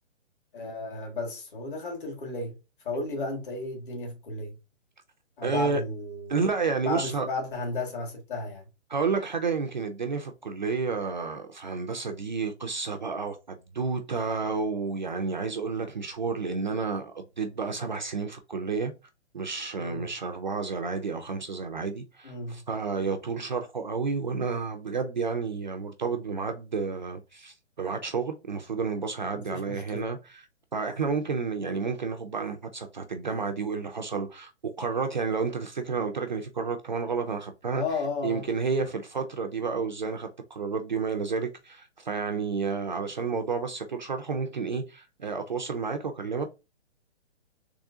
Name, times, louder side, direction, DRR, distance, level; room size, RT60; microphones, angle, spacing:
voice 1, 0.5-2.6 2.8-4.5 5.4-6.3 6.9-8.7 19.8-20.0 22.2-22.6 29.3-30.0 37.7-38.5, left 2 dB, 45° left, 1.8 m, -33 dB
voice 2, 5.4-5.8 6.3-7.3 8.9-18.9 19.3-30.4 30.7-34.5 34.8-37.8 38.2-46.4, right 5 dB, 40° right, 0.4 m, -31 dB
3.6 x 3.3 x 2.6 m
hypercardioid pair, 165°, 36 cm